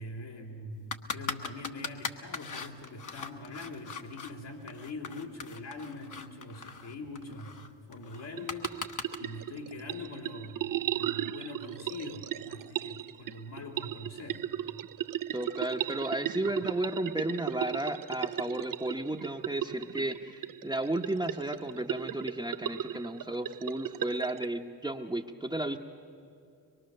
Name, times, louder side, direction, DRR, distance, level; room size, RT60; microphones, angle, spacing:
voice 1, 0.0-14.4, left 2 dB, 70° left, -3 dB, 3.1 m, -43 dB
sound 1, 0.9-4.3 4.7-9.2, left 4 dB, 45° left, 1.5 m, -39 dB
sound 2, 8.2-24.5, right 11 dB, 50° right, 0.6 m, -36 dB
voice 2, 15.3-25.8, right 1 dB, 10° right, 2 dB, 1.0 m, -33 dB
23.5 x 22.0 x 6.7 m, 2.5 s
supercardioid pair, 55°, 43 cm